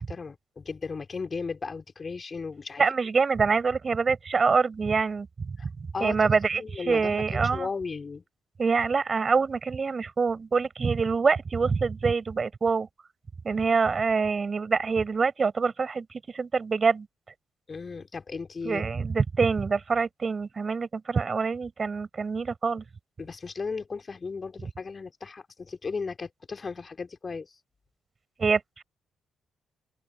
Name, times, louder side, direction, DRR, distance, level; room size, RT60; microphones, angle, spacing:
voice 1, 0.0-2.8 5.6-5.7 5.9-6.2 6.6-8.2 17.7-18.9 23.2-27.5, left 4 dB, 40° left, 3.8 m, -35 dB
voice 2, 2.8-5.7 6.0-7.7 8.6-12.9 13.4-17.1 18.6-22.8 28.4-28.8, right 5 dB, 40° right, 4.7 m, -25 dB
open air
figure-of-eight pair, 40°, 0 cm